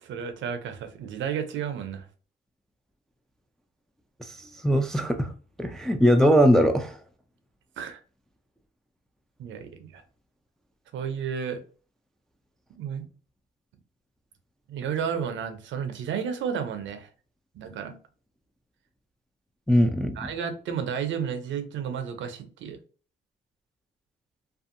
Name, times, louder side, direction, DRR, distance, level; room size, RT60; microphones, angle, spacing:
voice 1, 0.0-2.0 7.8-8.0 9.4-10.0 10.9-11.6 12.8-13.1 14.7-17.1 17.5-17.9 20.2-22.8, right 7 dB, 75° right, 0.6 m, -32 dB
voice 2, 4.2-5.3 5.6-7.0 19.7-20.3, equal, ahead, 0.3 m, -21 dB
2.6 x 2.3 x 2.5 m
cardioid pair, 90°, 20 cm